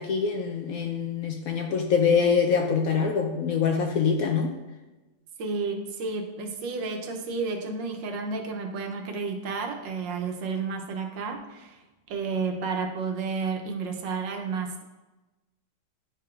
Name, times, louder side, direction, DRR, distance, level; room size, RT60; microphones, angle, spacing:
voice 1, 0.0-4.6, left 6 dB, 70° left, 3 dB, 0.8 m, -24 dB
voice 2, 5.4-11.8 12.1-14.8, right 4 dB, 90° right, 3 dB, 1.5 m, -31 dB
10.0 x 4.7 x 2.4 m, 1.1 s
omnidirectional pair, 1.9 m